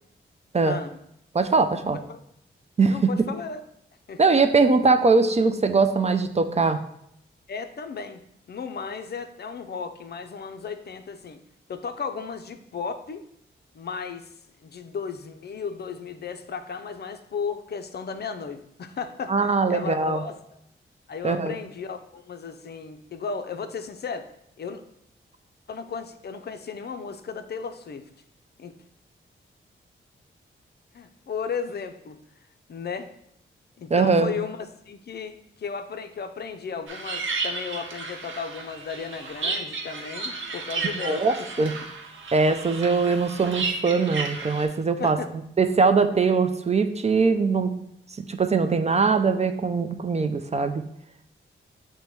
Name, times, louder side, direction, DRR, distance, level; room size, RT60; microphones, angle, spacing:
voice 1, 0.6-1.0 2.1-2.2 2.9-3.6 4.1-4.2 7.5-8.2 8.5-11.4 11.7-13.3 13.7-14.3 14.6-20.4 21.1-24.3 24.6-24.8 25.7-28.1 28.6-28.7 30.9-32.2 32.7-33.1 33.8-41.7 45.0-45.3, left 5 dB, 50° left, 7 dB, 0.5 m, -35 dB
voice 2, 1.3-2.0 2.8-3.0 4.2-6.8 19.3-20.2 21.2-21.5 33.9-34.3 41.0-41.7 42.3-45.2 45.6-47.7 48.2-50.8, right 4 dB, 30° right, 8 dB, 0.4 m, -21 dB
sound 1, 36.9-44.7, right 4 dB, 65° right, 0.8 m, -33 dB
6.5 x 2.2 x 3.1 m, 0.74 s
cardioid pair, 55°, 21 cm